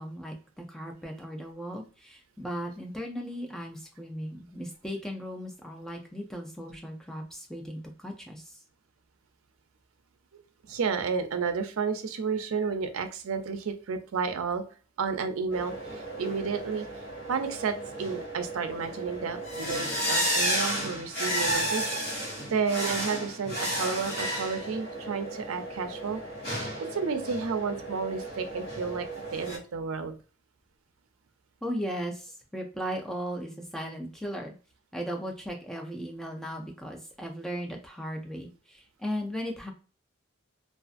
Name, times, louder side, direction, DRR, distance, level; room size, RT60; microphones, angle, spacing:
voice 1, 0.0-8.6 31.6-34.5 34.9-39.7, equal, ahead, 1 dB, 0.4 m, -37 dB
voice 2, 10.6-14.6 15.0-16.9 17.3-22.2 22.5-26.2 26.9-29.1 29.3-30.2, right 5 dB, 85° right, 7 dB, 0.4 m, -31 dB
sound 1, 15.5-29.6, equal, 50° left, 1.0 m, -33 dB
2.4 x 2.4 x 2.4 m, 0.36 s
head